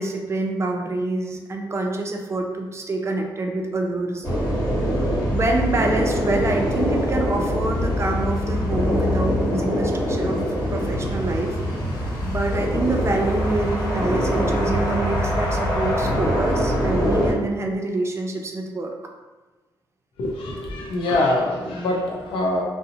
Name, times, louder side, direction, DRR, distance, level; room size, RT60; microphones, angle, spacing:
voice 1, 0.0-4.3 5.3-10.4 10.7-11.6 12.2-18.9, right 2 dB, 30° right, 2 dB, 0.4 m, -26 dB
sound 1, 4.2-17.3, equal, 45° left, 1.0 m, -23 dB
voice 2, 20.2-22.6, left 2 dB, 90° left, -2 dB, 0.6 m, -24 dB
2.5 x 2.0 x 2.7 m, 1.3 s
cardioid pair, 75°, 9 cm